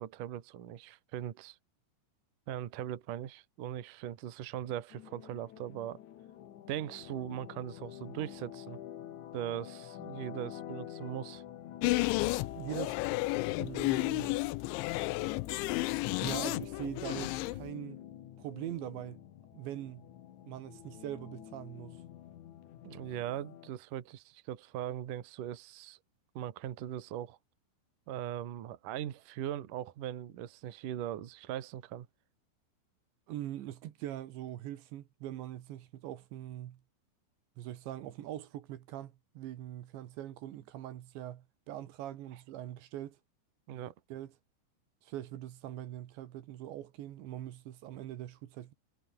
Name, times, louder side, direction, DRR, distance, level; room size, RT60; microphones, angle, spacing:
voice 1, 0.0-1.6 2.5-6.0 6.7-8.8 9.3-11.4 22.8-26.0 26.3-27.4 28.1-32.1 43.7-43.9, right 11 dB, 55° right, 2.7 m, -40 dB
sound 1, 4.9-23.7, left 11 dB, 60° left, 2.1 m, -48 dB
sound 2, 11.8-17.7, left 21 dB, 90° left, 3.0 m, -32 dB
voice 2, 12.5-13.0 13.6-14.4 16.2-18.0 18.4-19.2 19.5-20.1 20.5-22.0 33.3-36.8 37.6-43.2 44.1-44.3 45.0-48.7, right 13 dB, 75° right, 3.8 m, -42 dB
omnidirectional pair, 5.4 m